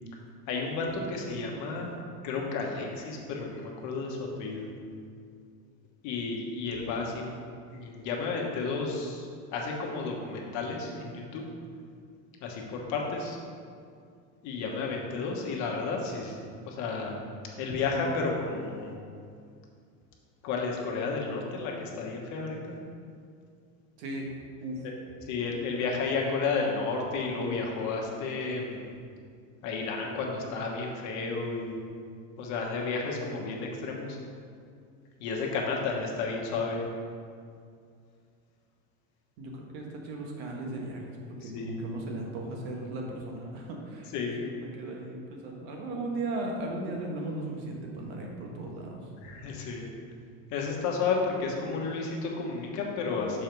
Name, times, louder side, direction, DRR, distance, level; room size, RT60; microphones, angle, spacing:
voice 1, 0.5-4.7 6.0-7.3 7.7-11.4 12.4-13.4 14.4-17.1 17.6-18.9 20.4-22.8 24.8-24.9 25.2-28.9 29.6-31.8 32.4-34.2 35.2-36.9 41.4-41.8 44.1-44.4 49.2-49.9 50.5-53.4, left 4 dB, 50° left, 0 dB, 1.3 m, -32 dB
voice 2, 24.0-24.3 24.6-24.8 39.4-41.1 41.4-44.1 44.5-49.0, right 2 dB, 75° right, 0 dB, 1.5 m, -36 dB
6.2 x 4.6 x 5.2 m, 2.3 s
cardioid pair, 155°, 36 cm